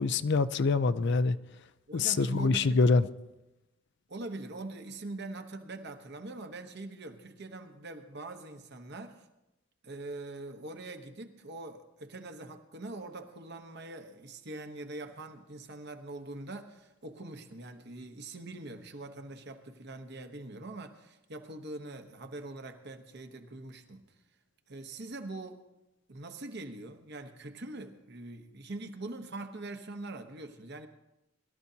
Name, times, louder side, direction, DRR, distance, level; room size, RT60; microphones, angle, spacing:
voice 1, 0.0-1.4 1.9-3.1, left 4 dB, 55° left, 0.4 m, -25 dB
voice 2, 1.9-2.8 4.1-9.3 9.8-24.0 24.7-25.6 26.1-30.9, right 2 dB, 50° right, 1.1 m, -43 dB
22.0 x 13.0 x 2.8 m
head